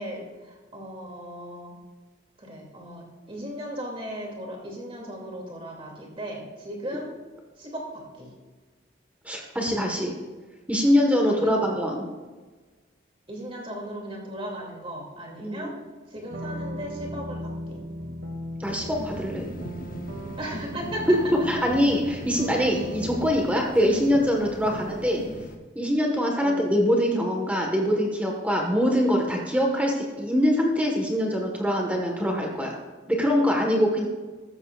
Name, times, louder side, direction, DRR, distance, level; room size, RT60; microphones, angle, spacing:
voice 1, 0.0-1.7 2.4-7.1 7.6-8.3 11.3-11.7 13.3-15.7 16.1-17.8 20.4-21.2 26.4-26.7, equal, 30° right, -1 dB, 2.8 m, -37 dB
voice 2, 9.2-10.1 10.7-12.1 15.4-15.7 18.6-19.5 21.5-25.2 25.7-32.7 33.1-34.1, equal, 5° right, 0 dB, 1.5 m, -23 dB
sound 1, 16.3-23.3, right 1 dB, 70° right, 1.6 m, -37 dB
sound 2, 18.6-25.6, left 1 dB, 45° left, 0.9 m, -39 dB
14.0 x 13.5 x 2.5 m, 1.3 s
head